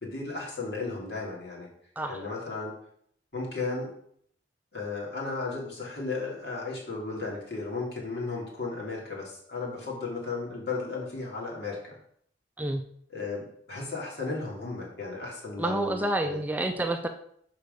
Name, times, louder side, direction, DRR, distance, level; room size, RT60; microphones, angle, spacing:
voice 1, 0.0-1.7 2.1-2.7 3.3-3.9 4.7-12.0 13.1-16.4, left 3 dB, 65° left, -4 dB, 2.6 m, -35 dB
voice 2, 15.6-17.1, right 1 dB, 10° right, 5 dB, 0.4 m, -28 dB
6.6 x 4.5 x 5.3 m, 0.66 s
head